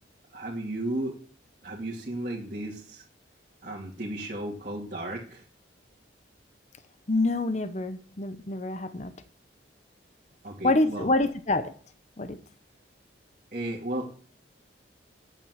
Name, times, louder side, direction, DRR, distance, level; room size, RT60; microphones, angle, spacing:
voice 1, 0.3-1.2 1.6-3.0 3.6-5.4 10.4-11.1 13.5-14.1, right 1 dB, 45° right, -5 dB, 2.4 m, -34 dB
voice 2, 7.1-9.1 10.6-11.7 12.2-12.4, left 2 dB, 35° left, 10 dB, 0.8 m, -26 dB
9.0 x 9.0 x 7.6 m, 0.44 s
head